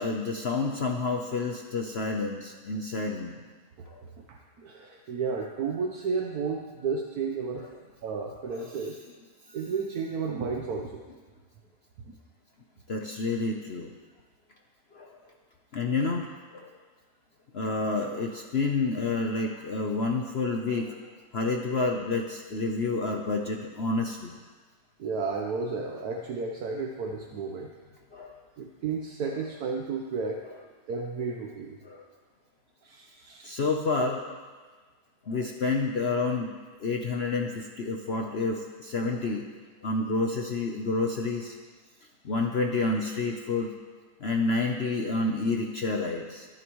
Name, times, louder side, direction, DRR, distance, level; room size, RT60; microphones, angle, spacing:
voice 1, 0.0-3.4 3.9-4.0 8.5-8.6 12.9-13.9 14.9-15.1 15.7-16.7 17.5-21.0 21.3-24.4 28.1-28.4 31.8-32.0 33.4-34.4 35.3-36.5 36.8-39.5 39.8-41.6 42.2-43.7 44.2-46.5, left 3 dB, 50° left, 2 dB, 0.9 m, -29 dB
voice 2, 4.2-7.6 8.0-9.0 9.5-11.0 12.0-12.2 25.0-27.7 28.6-30.4 30.9-31.8 32.8-33.5, right 5 dB, 70° right, 1 dB, 1.4 m, -32 dB
22.5 x 10.5 x 3.1 m, 1.4 s
omnidirectional pair, 1.8 m